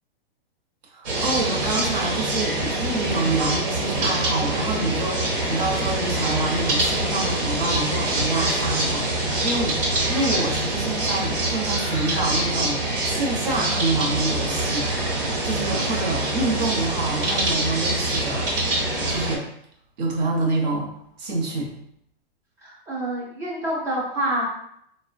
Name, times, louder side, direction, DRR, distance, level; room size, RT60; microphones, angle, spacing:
voice 1, 0.9-14.9 15.4-18.5 19.1-19.5 20.0-21.7, right 2 dB, 45° right, -1 dB, 0.7 m, -27 dB
sound 1, 1.0-19.4, right 2 dB, 60° right, 1.1 m, -25 dB
voice 2, 22.6-24.4, right 1 dB, 10° right, -5 dB, 0.4 m, -27 dB
2.9 x 2.1 x 2.4 m, 0.71 s
hypercardioid pair, 150°, 31 cm